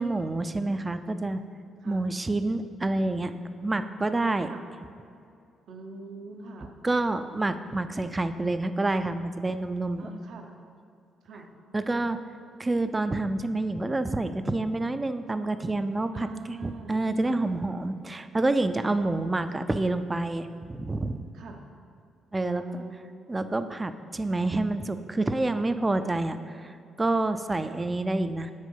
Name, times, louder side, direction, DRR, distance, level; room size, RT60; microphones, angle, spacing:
voice 1, 0.0-1.4 1.9-3.3 3.6-4.5 6.8-10.1 11.7-12.2 12.6-21.3 22.3-22.6 23.3-28.5, right 2 dB, 20° right, 10 dB, 0.3 m, -28 dB
voice 2, 5.7-6.7 10.0-10.5 11.2-11.5 16.1-17.4 19.0-19.7 21.3-21.6 22.4-23.6 27.7-27.8, right 4 dB, 70° right, 3 dB, 0.8 m, -44 dB
6.4 x 4.6 x 5.3 m, 2.5 s
cardioid pair, 90°, 0 cm